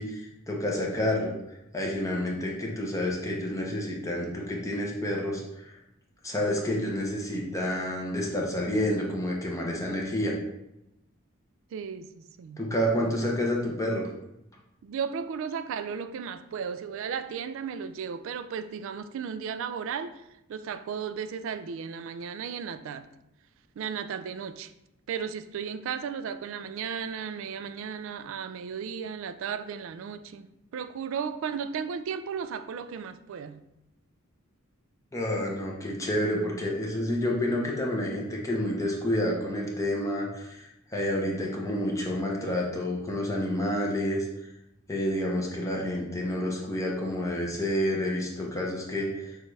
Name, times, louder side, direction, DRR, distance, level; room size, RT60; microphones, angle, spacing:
voice 1, 0.0-1.3 1.7-5.8 6.2-10.3 12.6-14.1 35.1-44.3 44.9-49.4, left 1 dB, 15° left, 0.7 m, -29 dB
voice 2, 11.7-12.6 14.8-20.2 20.5-23.1 23.8-24.7 25.1-30.5 30.7-33.6, right 7 dB, 65° right, 0.3 m, -35 dB
6.4 x 2.4 x 3.2 m
head